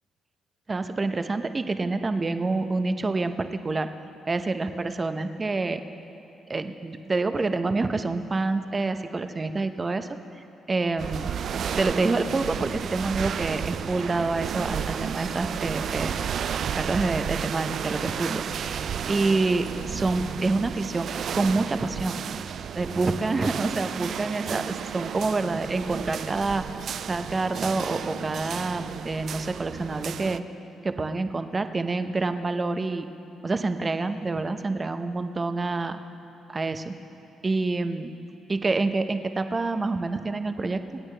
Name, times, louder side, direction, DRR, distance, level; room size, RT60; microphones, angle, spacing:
voice 1, 0.7-3.9 4.3-5.8 6.5-10.1 10.7-11.3 11.6-16.2 16.7-21.1 21.3-22.2 22.6-26.6 27.1-30.4 30.8-33.1 33.4-36.0 36.5-36.9 37.4-38.1 38.5-41.0, right 3 dB, 30° right, 9 dB, 0.7 m, -27 dB
sound 1, 11.0-30.4, right 8 dB, 60° right, 0.3 m, -32 dB
27.0 x 9.0 x 3.3 m, 2.7 s
cardioid pair, 90°, 0 cm